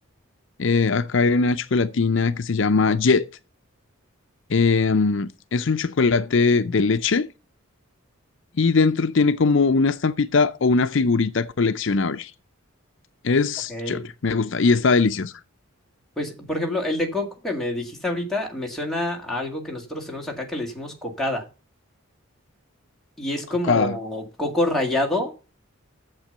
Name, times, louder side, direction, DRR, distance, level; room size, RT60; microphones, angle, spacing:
voice 1, 0.6-3.3 4.5-7.3 8.6-12.3 13.2-15.3 23.7-24.0, left 4 dB, 60° left, 0.5 m, -20 dB
voice 2, 13.7-14.0 16.2-21.4 23.2-25.3, left 1 dB, ahead, 2.1 m, -27 dB
8.9 x 7.5 x 6.5 m
head